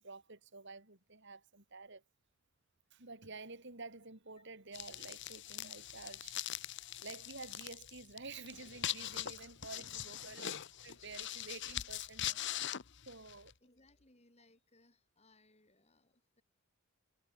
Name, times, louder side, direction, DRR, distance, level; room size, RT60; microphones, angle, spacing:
voice 1, 0.0-2.0 2.9-6.6 7.0-10.5 10.8-12.4 13.1-13.5, right 3 dB, 55° right, 3.8 m, -50 dB
sound 1, 4.7-13.5, left 12 dB, 55° left, 0.9 m, -42 dB
voice 2, 9.8-10.4 13.6-16.4, left 2 dB, 30° left, 6.2 m, -68 dB
head